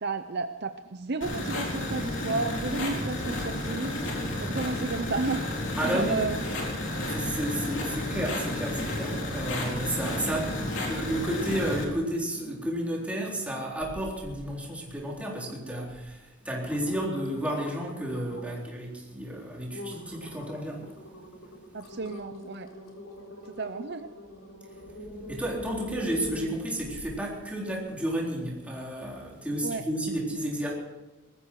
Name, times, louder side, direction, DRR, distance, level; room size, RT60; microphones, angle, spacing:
voice 1, 0.0-3.9 4.4-5.5 5.8-6.4 21.7-22.7 23.6-24.1 29.6-29.8, right 3 dB, 50° right, 9 dB, 0.7 m, -32 dB
sound 1, 1.2-11.8, left 1 dB, 60° left, 4.0 m, -32 dB
voice 2, 5.8-6.3 7.1-20.8 25.3-30.7, right 1 dB, 5° right, -3 dB, 4.0 m, -32 dB
sound 2, 13.8-14.4 14.8-15.3 15.9-16.0 16.4-18.6 19.1-19.3 19.7-27.2 27.7-27.8, equal, 90° left, 3.6 m, -43 dB
20.0 x 14.5 x 4.7 m, 1.1 s
head